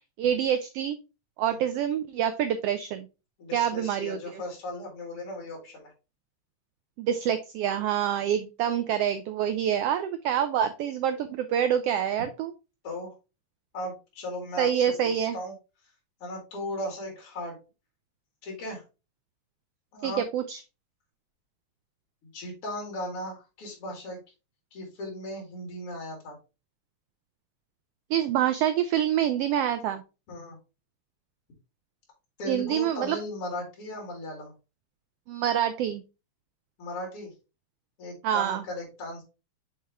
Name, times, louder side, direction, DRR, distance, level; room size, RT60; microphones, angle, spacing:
voice 1, 0.2-1.0 1.4-3.1 3.5-4.4 7.0-12.5 14.6-15.4 20.0-20.6 28.1-30.0 32.5-33.2 35.3-36.0 38.2-38.6, right 9 dB, 90° right, 10 dB, 1.3 m, -26 dB
voice 2, 3.4-5.9 12.8-13.1 13.7-15.5 16.2-17.6 18.4-18.8 19.9-20.2 22.3-24.2 24.7-26.4 30.3-30.6 32.4-34.5 36.8-37.3 38.0-39.2, left 1 dB, 50° left, -1 dB, 3.2 m, -37 dB
6.6 x 4.4 x 3.4 m, 0.29 s
omnidirectional pair, 3.3 m